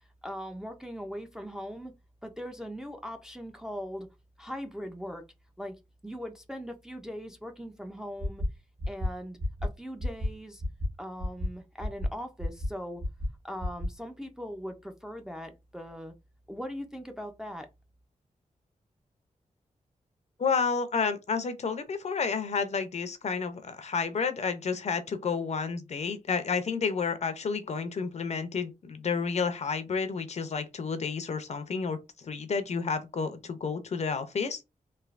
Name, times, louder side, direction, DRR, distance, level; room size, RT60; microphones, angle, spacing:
voice 1, 0.2-1.9 2.2-4.1 4.4-5.2 5.6-5.8 6.0-8.4 8.9-10.6 11.0-13.0 13.4-16.1 16.5-17.7, equal, 5° right, 0.4 m, -40 dB
sound 1, 8.2-8.5 8.8-9.1 9.4-9.7 10.0-10.3 10.6-10.9 11.2-11.5 11.8-12.1 12.4-12.7 13.0-13.3 13.6-13.9, left 1 dB, 55° right, 1.3 m, -30 dB
voice 2, 20.4-34.6, left 5 dB, 55° left, 0.5 m, -30 dB
3.2 x 2.6 x 2.4 m
wide cardioid pair, 175°, 14 cm